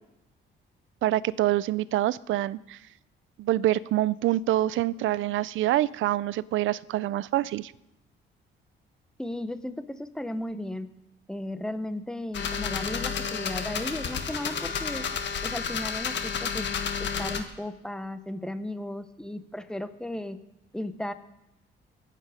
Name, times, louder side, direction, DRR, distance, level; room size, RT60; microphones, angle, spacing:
voice 1, 1.0-2.8 3.4-7.7, right 14 dB, 75° right, 20 dB, 0.5 m, -26 dB
voice 2, 9.2-10.9 11.3-15.1 15.4-16.7 17.0-20.4 20.7-21.1, left 1 dB, 5° left, 10 dB, 1.0 m, -35 dB
sound 1, 12.3-17.4, left 6 dB, 65° left, 1.6 m, -31 dB
21.5 x 8.5 x 5.1 m, 0.91 s
cardioid pair, 90°, 20 cm